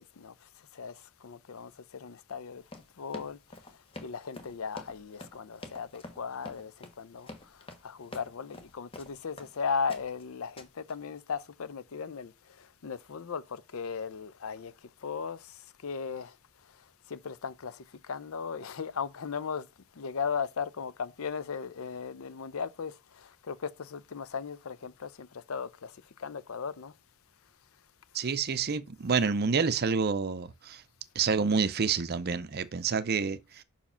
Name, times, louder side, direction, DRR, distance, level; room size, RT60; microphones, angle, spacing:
voice 1, 0.0-2.6 3.0-16.4 16.7-19.7 20.0-26.9, left 6 dB, 65° left, 0.5 m, -37 dB
Run, 2.6-9.5 9.9-10.2 10.6-10.9, left 2 dB, 25° left, 1.0 m, -47 dB
voice 2, 28.1-30.8 31.2-33.6, right 5 dB, 45° right, 0.5 m, -28 dB
5.7 x 4.8 x 5.5 m
head